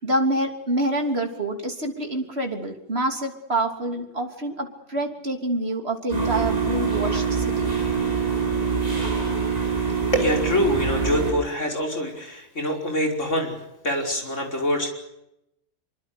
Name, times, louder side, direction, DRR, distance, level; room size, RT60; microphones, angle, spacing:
voice 1, 0.0-7.7, right 1 dB, 40° right, 4 dB, 3.5 m, -27 dB
sound 1, 6.1-11.3, right 5 dB, 25° right, 7.8 m, -24 dB
voice 2, 10.1-13.6 13.8-14.9, equal, 50° left, 2 dB, 5.7 m, -25 dB
25.5 x 24.5 x 6.8 m, 0.84 s
omnidirectional pair, 1.6 m